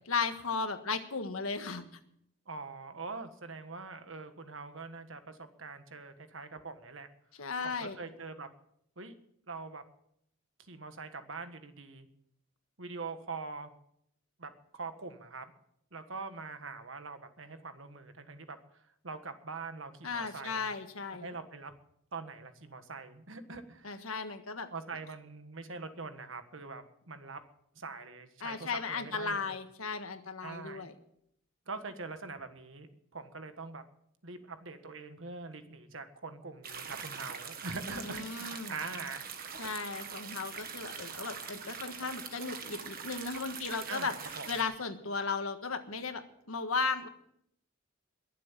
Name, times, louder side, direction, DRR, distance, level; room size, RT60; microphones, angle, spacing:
voice 1, 0.1-1.8 7.4-8.0 20.0-21.3 23.8-24.7 28.4-30.9 38.0-38.7 39.6-44.1 44.5-47.1, left 4 dB, 85° left, 8 dB, 1.6 m, -35 dB
voice 2, 2.5-7.1 7.6-8.5 9.0-9.1 9.5-9.8 10.7-12.1 12.8-13.7 14.4-15.5 15.9-20.7 21.1-21.7 22.1-24.0 24.7-27.4 27.7-29.6 30.4-30.9 31.7-33.8 34.2-39.2 43.9-44.5, right 4 dB, 65° right, 9 dB, 1.6 m, -43 dB
sound 1, 36.6-44.6, right 6 dB, 45° right, 1.6 m, -43 dB
22.0 x 7.5 x 7.5 m, 0.73 s
head